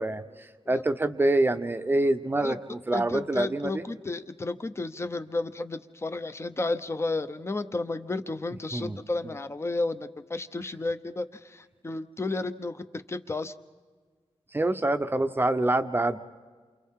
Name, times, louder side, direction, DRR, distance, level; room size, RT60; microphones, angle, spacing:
voice 1, 0.0-3.8 8.7-9.0 9.2-9.3 14.5-16.2, right 2 dB, 20° right, 9 dB, 0.8 m, -26 dB
voice 2, 2.9-12.8 13.1-13.5, left 2 dB, 25° left, 10 dB, 0.9 m, -32 dB
29.0 x 28.0 x 3.7 m, 1.5 s
wide cardioid pair, 135°, 11 cm